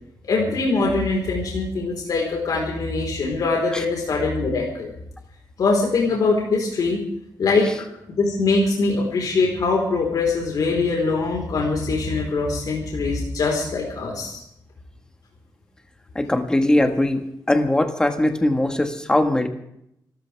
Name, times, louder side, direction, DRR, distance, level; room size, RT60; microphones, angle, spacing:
voice 1, 0.3-4.9 5.6-7.0 7.4-7.7 8.1-14.4, left 3 dB, 65° left, -1 dB, 4.4 m, -22 dB
voice 2, 16.1-19.5, left 1 dB, 10° left, 5 dB, 1.7 m, -20 dB
28.0 x 13.5 x 3.6 m, 0.75 s
wide cardioid pair, 140°, 7 cm